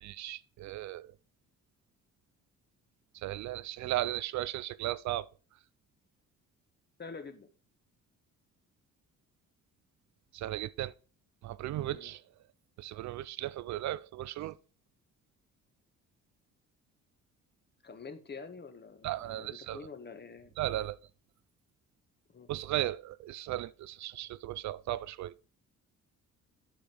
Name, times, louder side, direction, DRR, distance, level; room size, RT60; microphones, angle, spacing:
voice 1, 0.0-1.1 3.2-5.3 10.3-10.9 11.4-12.2 12.8-14.5 19.0-19.8 20.6-21.0 22.5-25.3, right 14 dB, 70° right, 0.5 m, -36 dB
voice 2, 7.0-7.5 11.8-12.1 14.4-14.5 17.8-20.9 22.3-22.5, left 5 dB, 35° left, 1.3 m, -47 dB
8.8 x 5.2 x 4.5 m
cardioid pair, 90°, 30 cm